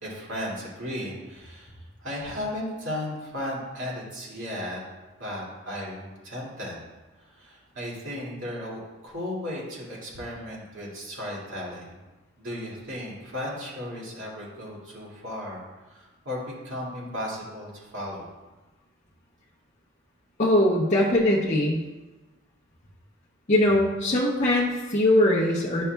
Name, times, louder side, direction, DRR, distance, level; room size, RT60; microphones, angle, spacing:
voice 1, 0.0-4.8 5.2-6.8 7.2-12.0 12.4-18.3, left 1 dB, 70° right, -5 dB, 2.3 m, -35 dB
voice 2, 20.4-21.8 23.5-25.8, left 1 dB, 35° left, -6 dB, 0.7 m, -21 dB
10.0 x 5.5 x 2.3 m, 1.1 s
head